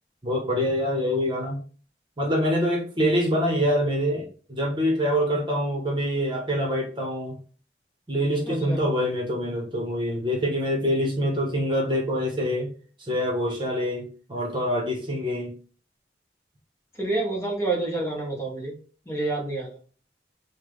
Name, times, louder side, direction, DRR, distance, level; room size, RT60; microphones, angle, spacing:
voice 1, 0.2-1.6 2.2-7.3 8.1-12.7 13.0-15.5, equal, 25° right, 0 dB, 1.0 m, -25 dB
voice 2, 8.5-8.8 16.9-18.7 19.0-19.8, right 2 dB, 15° left, -1 dB, 1.1 m, -28 dB
5.8 x 2.3 x 3.2 m, 0.39 s
head